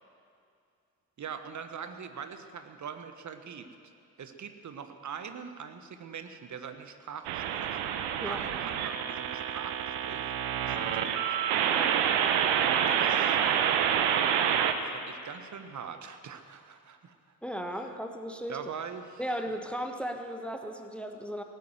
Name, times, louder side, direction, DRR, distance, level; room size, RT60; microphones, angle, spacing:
voice 1, 1.2-3.7 4.2-7.8 8.2-10.3 10.7-11.2 12.6-13.4 14.8-17.2 18.5-19.2, right 7 dB, 35° right, 8 dB, 1.3 m, -42 dB
sound 1, 7.2-14.7, right 9 dB, 60° right, 1.1 m, -27 dB
voice 2, 17.4-18.6 19.2-21.4, equal, ahead, 5 dB, 1.3 m, -36 dB
18.0 x 9.3 x 7.8 m, 2.4 s
figure-of-eight pair, 45°, 47 cm